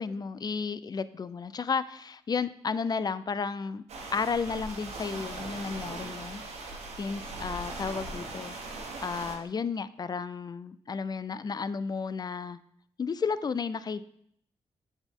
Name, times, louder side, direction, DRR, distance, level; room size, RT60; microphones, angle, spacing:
voice 1, 0.0-3.8 4.1-6.4 7.0-12.6 13.0-14.0, left 5 dB, 35° left, 15 dB, 0.4 m, -33 dB
sound 1, 3.9-9.4, right 2 dB, 75° right, 1.2 m, -39 dB
7.8 x 4.3 x 3.6 m, 0.70 s
cardioid pair, 60°, 11 cm